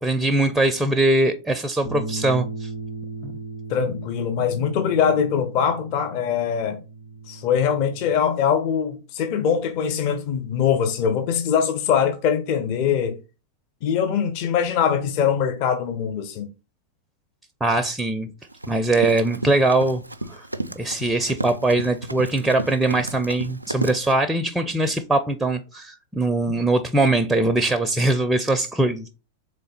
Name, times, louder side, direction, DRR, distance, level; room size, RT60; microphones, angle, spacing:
voice 1, 0.0-2.7 3.2-3.3 17.6-18.3 18.7-20.0 20.3-20.5 20.8-29.1, right 2 dB, 5° right, 0.4 m, -21 dB
sound 1, 1.8-8.1, right 2 dB, 65° left, 1.6 m, -36 dB
voice 2, 3.7-6.8 7.3-13.2 13.8-16.5 26.5-26.6, left 7 dB, 45° left, 0.6 m, -22 dB
Run, 18.4-24.1, right 1 dB, 85° right, 0.3 m, -33 dB
3.7 x 3.2 x 4.1 m
figure-of-eight pair, 90°, 0 cm